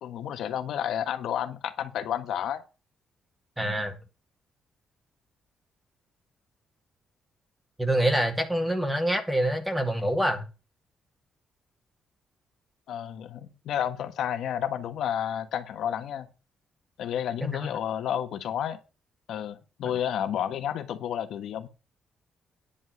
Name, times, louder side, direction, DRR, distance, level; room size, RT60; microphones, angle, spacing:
voice 1, 0.0-2.6 12.9-16.3 17.0-18.8 19.3-21.7, left 9 dB, 75° left, 1.3 m, -31 dB
voice 2, 3.6-4.0 7.8-10.4 17.4-17.6, right 1 dB, 5° right, 1.9 m, -26 dB
10.0 x 5.4 x 7.8 m
cardioid pair, 145°, 0 cm